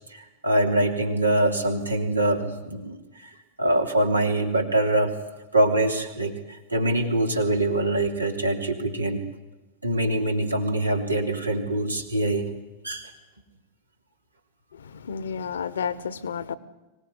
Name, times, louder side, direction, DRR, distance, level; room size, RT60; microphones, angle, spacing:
voice 1, 0.4-3.0 3.6-5.1 5.5-6.4 6.7-9.2 9.8-12.5 12.8-13.1, right 1 dB, 80° right, 3.2 m, -23 dB
voice 2, 14.7-16.6, left 7 dB, 65° left, 1.2 m, -31 dB
24.5 x 18.5 x 9.8 m
figure-of-eight pair, 90°, 0 cm